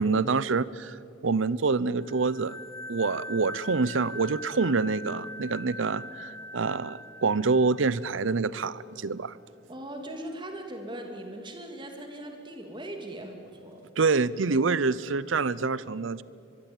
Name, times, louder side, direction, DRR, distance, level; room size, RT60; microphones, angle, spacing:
voice 1, 0.0-2.6 2.9-9.4 14.0-16.2, right 4 dB, 85° right, 19 dB, 0.7 m, -26 dB
sound 1, 2.0-8.5, left 1 dB, 15° left, 1.3 m, -42 dB
voice 2, 9.7-13.8, right 1 dB, 25° right, 3 dB, 3.0 m, -39 dB
23.5 x 22.5 x 9.1 m, 2.6 s
head